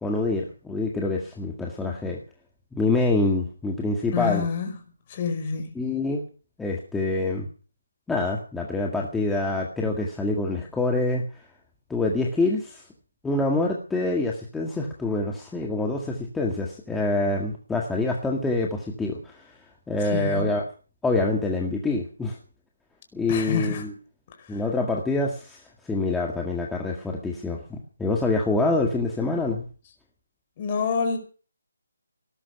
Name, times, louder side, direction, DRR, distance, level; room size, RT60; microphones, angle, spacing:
voice 1, 0.0-2.2 2.7-4.5 5.8-6.2 6.6-7.5 8.1-11.2 11.9-12.8 13.2-19.5 19.9-20.6 21.0-22.4 23.1-23.9 24.5-29.7, left 2 dB, 5° left, 1.9 m, -26 dB
voice 2, 4.1-4.7 5.1-5.7 20.1-20.6 23.3-23.8 30.6-31.2, left 5 dB, 25° left, 4.9 m, -27 dB
18.5 x 12.5 x 6.0 m
hypercardioid pair, 165°, 0 cm